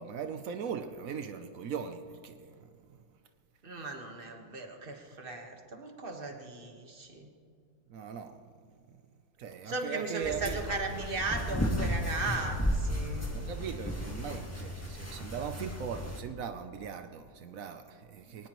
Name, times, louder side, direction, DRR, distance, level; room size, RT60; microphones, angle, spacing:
voice 1, 0.0-2.7 4.9-5.0 7.9-8.4 8.9-9.0 9.4-10.6 13.3-18.5, right 7 dB, 85° right, 0.7 m, -39 dB
voice 2, 3.6-7.3 9.6-13.3, right 3 dB, 30° right, 1.4 m, -37 dB
sound 1, 10.2-16.2, equal, 10° left, 1.3 m, -34 dB
22.5 x 19.0 x 3.1 m
omnidirectional pair, 2.4 m